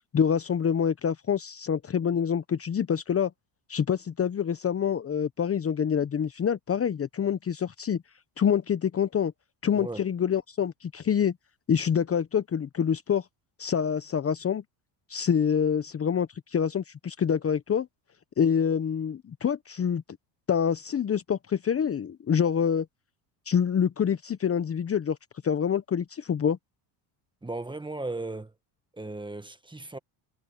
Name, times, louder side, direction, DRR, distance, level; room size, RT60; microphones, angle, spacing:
voice 1, 0.1-3.3 3.7-8.0 8.4-9.3 9.6-11.3 11.7-13.2 13.6-14.6 15.1-17.9 18.4-20.0 20.5-22.9 23.5-25.2 25.4-26.6, left 7 dB, 30° left, 1.0 m, -26 dB
voice 2, 9.7-10.0 27.4-28.5 28.9-30.0, right 2 dB, 10° right, 1.6 m, -36 dB
supercardioid pair, 90°, 47 cm